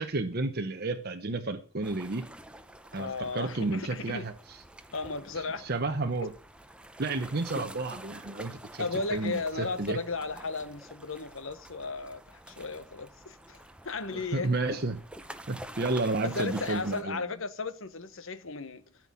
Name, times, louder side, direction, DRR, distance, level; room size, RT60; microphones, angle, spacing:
voice 1, 0.0-2.2 2.9-4.6 5.4-6.3 7.0-10.0 14.1-15.0 15.5-17.2, right 3 dB, 45° right, 0.9 m, -32 dB
sound 1, 1.8-17.0, right 1 dB, 5° right, 0.7 m, -47 dB
voice 2, 2.9-4.3 4.9-5.7 8.8-14.8 16.2-18.8, left 4 dB, 60° left, 1.1 m, -35 dB
13.5 x 6.0 x 8.5 m
head